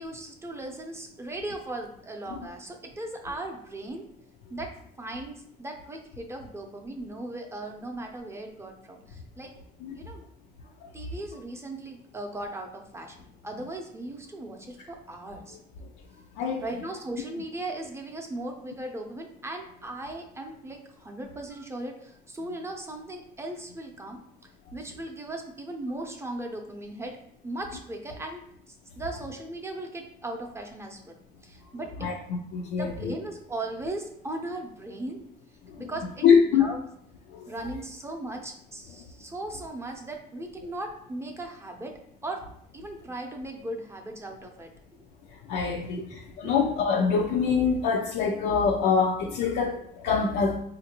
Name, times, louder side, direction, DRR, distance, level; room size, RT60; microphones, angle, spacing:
voice 1, 0.0-4.1 4.5-9.5 10.0-10.2 10.9-13.2 13.4-15.6 16.6-24.2 24.7-27.2 27.4-31.2 31.4-32.1 32.8-35.2 35.8-36.2 36.5-36.9 37.5-42.4 42.7-44.7 46.0-46.1 46.4-46.5, right 2 dB, 15° right, 3 dB, 0.5 m, -38 dB
voice 2, 32.5-33.1 35.8-35.9 36.2-36.6 37.3-37.4 45.5-46.0 46.4-50.6, left 6 dB, 75° left, 0 dB, 0.4 m, -24 dB
3.6 x 2.5 x 2.8 m, 0.71 s
cardioid pair, 110°, 17 cm